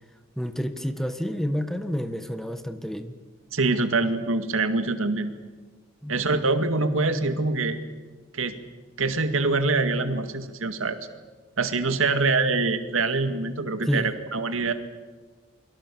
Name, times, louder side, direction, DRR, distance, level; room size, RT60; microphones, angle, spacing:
voice 1, 0.4-3.2 6.0-6.2 13.9-14.1, equal, ahead, 9 dB, 1.5 m, -29 dB
voice 2, 3.5-5.3 6.1-7.8 8.3-8.6 9.0-11.0 11.6-14.7, right 3 dB, 75° right, 8 dB, 2.1 m, -24 dB
29.0 x 24.0 x 7.1 m, 1.4 s
head